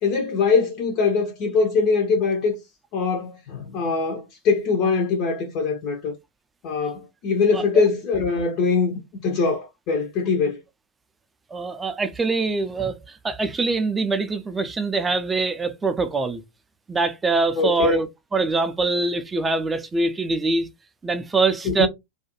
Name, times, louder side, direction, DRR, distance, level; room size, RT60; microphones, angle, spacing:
voice 1, 0.0-2.6 2.9-6.1 6.6-8.9 9.2-10.6 17.6-18.0 21.6-21.9, left 4 dB, 40° left, 0.5 m, -22 dB
voice 2, 11.5-16.4 16.9-18.1 18.3-20.7 21.0-21.9, right 3 dB, 15° right, 0.4 m, -23 dB
2.4 x 2.2 x 2.8 m
figure-of-eight pair, 90°, 0 cm